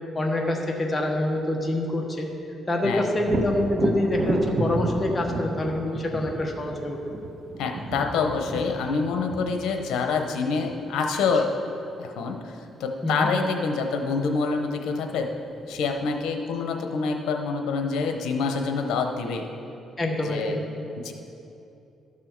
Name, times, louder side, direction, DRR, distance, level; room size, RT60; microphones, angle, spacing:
voice 1, 0.1-2.3 2.7-7.0 13.0-13.3 20.0-20.6, left 1 dB, 25° left, 1 dB, 1.3 m, -26 dB
Thunder, 3.2-10.9 14.5-14.6 15.1-16.0, right 2 dB, 45° right, 1.0 m, -32 dB
voice 2, 7.6-11.5 12.0-12.5 12.8-15.3 15.7-19.5 20.2-20.6 21.0-21.1, left 4 dB, 85° left, 4 dB, 0.9 m, -26 dB
13.0 x 6.2 x 4.6 m, 2.8 s
cardioid pair, 90°, 0 cm